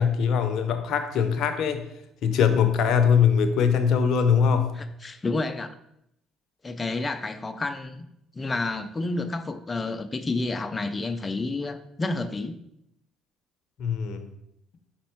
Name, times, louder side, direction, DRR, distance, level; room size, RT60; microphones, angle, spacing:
voice 1, 0.0-1.8 2.2-4.8 13.8-14.3, left 7 dB, 65° left, 0.7 m, -22 dB
voice 2, 4.8-5.7 6.6-8.1 8.4-12.6, left 3 dB, 25° left, 0.6 m, -30 dB
5.3 x 4.3 x 4.5 m
hypercardioid pair, 65°, 0 cm